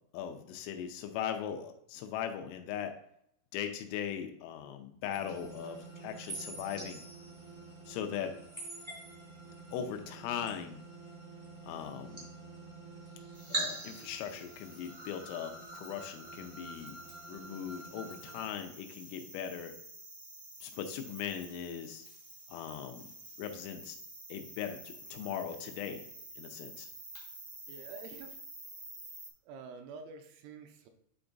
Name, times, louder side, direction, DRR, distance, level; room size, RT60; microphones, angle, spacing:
voice 1, 0.1-3.0 3.5-7.0 7.9-8.4 9.7-10.8 11.6-12.2 13.5-17.0 17.3-19.7 20.6-22.1 22.5-23.1 23.4-24.0 24.3-26.0 26.4-26.9, left 9 dB, 85° left, 6 dB, 3.1 m, -39 dB
sound 1, 5.1-18.5, right 2 dB, 20° right, 0.7 m, -45 dB
sound 2, 13.3-29.3, right 2 dB, 55° right, 0.8 m, -51 dB
voice 2, 27.7-28.4 29.5-30.9, right 5 dB, 80° right, 6 dB, 3.0 m, -48 dB
8.7 x 3.4 x 3.9 m, 0.73 s
omnidirectional pair, 5.8 m